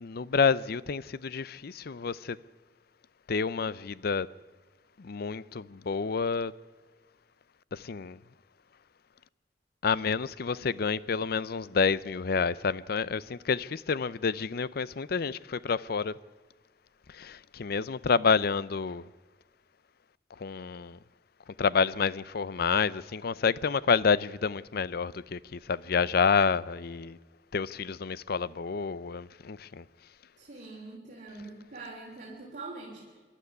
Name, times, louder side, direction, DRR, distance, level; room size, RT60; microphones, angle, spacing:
voice 1, 0.0-2.4 3.3-4.3 5.0-6.5 7.7-8.2 9.8-16.2 17.1-19.1 20.4-21.0 21.5-27.2 27.5-29.8, left 5 dB, 60° left, 0.5 m, -29 dB
voice 2, 30.4-33.2, right 3 dB, 45° right, 3.4 m, -44 dB
26.5 x 12.0 x 9.7 m
head